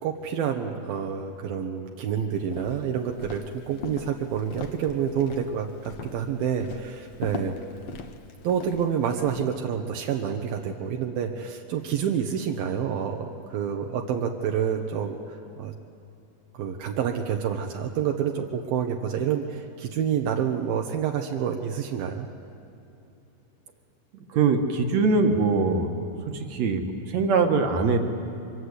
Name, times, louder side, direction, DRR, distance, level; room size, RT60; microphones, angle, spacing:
voice 1, 0.0-7.5 8.4-15.7 16.5-22.3, right 8 dB, 80° right, 2 dB, 3.0 m, -28 dB
Walk footsteps, 2.4-9.5, left 5 dB, 60° left, 1.5 m, -40 dB
voice 2, 24.3-28.1, right 4 dB, 55° right, 5 dB, 2.6 m, -23 dB
29.5 x 25.0 x 8.2 m, 2.7 s
omnidirectional pair, 4.3 m